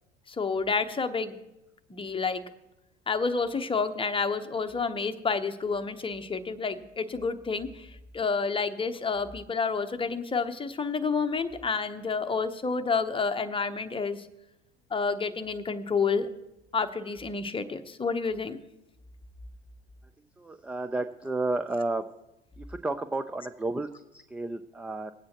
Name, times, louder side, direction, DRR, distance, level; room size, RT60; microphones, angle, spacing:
voice 1, 0.3-1.3 1.9-2.4 3.1-7.9 8.1-14.3 14.9-16.3 16.7-18.6, left 5 dB, 15° left, 8 dB, 0.9 m, -29 dB
voice 2, 20.4-22.1 22.6-25.1, right 2 dB, 5° right, 10 dB, 0.3 m, -32 dB
20.5 x 8.6 x 2.9 m, 0.93 s
hypercardioid pair, 80°, 32 cm